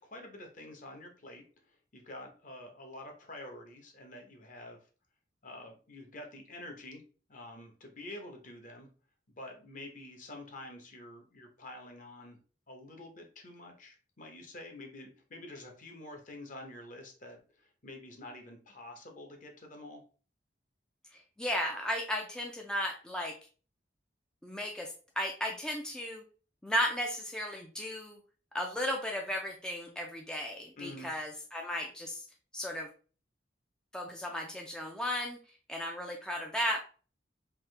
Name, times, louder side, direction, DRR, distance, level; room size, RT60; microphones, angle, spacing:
voice 1, 0.0-1.4 1.9-4.8 5.4-7.0 7.3-8.9 9.3-12.4 12.7-20.0 30.8-31.1, left 1 dB, 45° left, 3 dB, 0.9 m, -48 dB
voice 2, 21.1-23.4 24.4-26.2 26.6-28.2 28.5-32.2 32.5-32.9 33.9-35.4 35.7-36.8, equal, 5° left, 1 dB, 0.4 m, -35 dB
3.6 x 2.7 x 3.2 m, 0.38 s
head